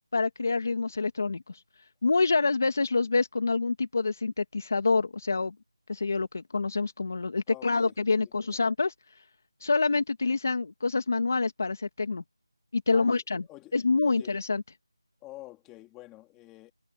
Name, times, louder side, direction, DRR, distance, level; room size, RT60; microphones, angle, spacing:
voice 1, 0.1-1.6 2.0-5.5 5.9-8.9 9.6-12.2 12.7-13.4 13.7-14.6, left 4 dB, 35° left, 1.8 m, -27 dB
voice 2, 7.5-7.9 8.2-8.6 12.9-13.2 13.5-13.7 14.0-14.4 15.2-16.7, left 17 dB, 5° left, 2.2 m, -48 dB
figure-of-eight pair, 180°, 3 cm